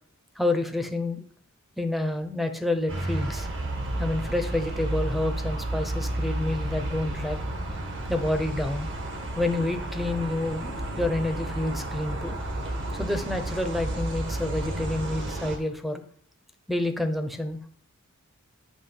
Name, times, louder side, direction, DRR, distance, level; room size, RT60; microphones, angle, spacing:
voice 1, 0.4-1.2 1.8-3.5 4.0-7.4 8.1-8.9 9.3-12.4 12.9-16.0 16.7-17.7, left 2 dB, ahead, 7 dB, 0.7 m, -28 dB
sound 1, 2.9-15.6, right 1 dB, 60° right, 1.5 m, -31 dB
8.1 x 3.0 x 5.8 m, 0.62 s
head